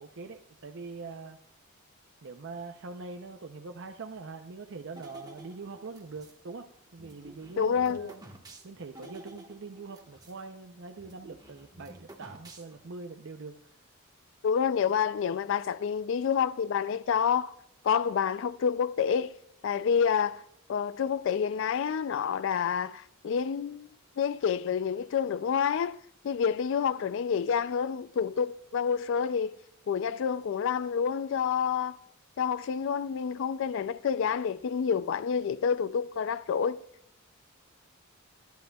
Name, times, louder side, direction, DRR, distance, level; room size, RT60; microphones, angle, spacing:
voice 1, 0.0-1.4 2.2-8.2 8.6-13.6, right 4 dB, 55° right, 0.6 m, -43 dB
sound 1, 5.0-6.4 7.0-10.4 10.7-10.8 11.0-13.0, right 2 dB, 20° right, 1.3 m, -51 dB
voice 2, 7.6-8.1 14.4-17.5 17.8-19.3 19.6-20.4 20.7-23.9 24.2-26.0 26.2-29.6 29.9-32.0 32.4-36.8, left 7 dB, 60° left, 0.3 m, -28 dB
23.5 x 10.5 x 2.3 m
head